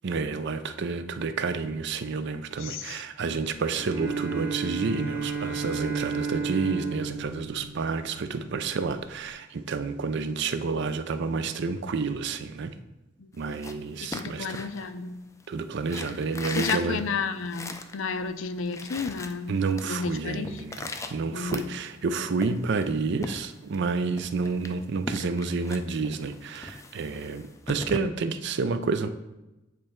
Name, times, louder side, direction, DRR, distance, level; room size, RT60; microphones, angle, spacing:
voice 1, 0.0-12.7 13.4-14.6 15.5-17.0 19.5-29.1, right 4 dB, 60° right, 10 dB, 0.5 m, -29 dB
voice 2, 2.6-3.0 13.2-13.3 14.1-15.2 16.5-19.5 19.8-20.6 21.3-21.7, left 5 dB, 75° left, 11 dB, 0.5 m, -32 dB
Bowed string instrument, 3.7-8.4, right 5 dB, 10° right, 0.9 m, -32 dB
sound 1, 13.4-15.4 15.8-18.0 18.3-18.4 18.6-19.9 20.1-22.0 22.4-23.9 24.2-28.0, left 3 dB, 15° left, 0.3 m, -39 dB
8.5 x 3.2 x 4.4 m, 1.0 s
head